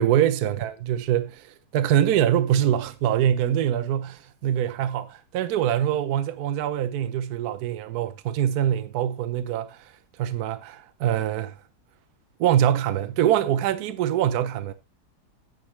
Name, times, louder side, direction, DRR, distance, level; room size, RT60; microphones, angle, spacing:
voice 1, 0.0-9.9 10.2-11.5 12.4-14.7, right 10 dB, 70° right, 1.2 m, -24 dB
9.2 x 9.2 x 3.2 m
omnidirectional pair, 1.8 m